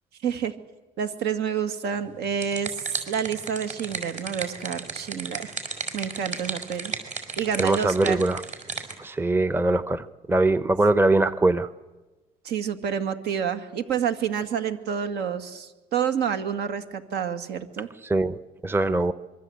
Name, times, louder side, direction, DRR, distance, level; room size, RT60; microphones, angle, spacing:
voice 1, 0.2-0.5 1.0-5.5 5.9-7.0 7.4-8.2 12.4-17.9, right 8 dB, 75° right, 8 dB, 2.3 m, -28 dB
sound 1, 2.1-9.0, right 4 dB, 45° right, 5.3 m, -34 dB
voice 2, 7.6-8.4 9.0-11.7 18.0-19.1, right 2 dB, 15° right, 14 dB, 0.8 m, -22 dB
26.0 x 23.0 x 8.1 m, 1.2 s
cardioid pair, 110°, 17 cm